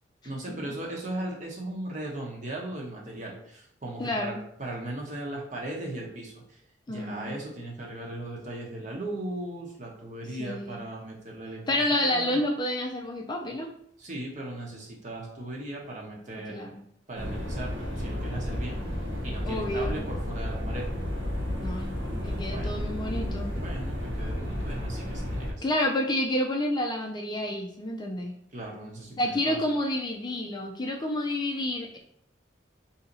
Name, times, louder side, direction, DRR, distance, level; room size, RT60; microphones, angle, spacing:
voice 1, 0.2-4.3 4.6-6.6 6.9-12.4 14.0-16.7 17.1-18.8 19.2-20.9 22.4-22.8 23.5-25.7 28.5-29.6, right 1 dB, 40° right, -2 dB, 1.1 m, -38 dB
voice 2, 4.0-4.4 6.9-7.3 10.4-10.8 11.7-13.7 16.5-16.8 19.4-20.0 21.6-23.5 25.6-28.3 29.2-32.0, left 1 dB, 25° left, 1 dB, 0.4 m, -29 dB
sound 1, 17.1-25.5, equal, 85° right, 1.1 m, -32 dB
4.1 x 2.8 x 3.9 m, 0.69 s
head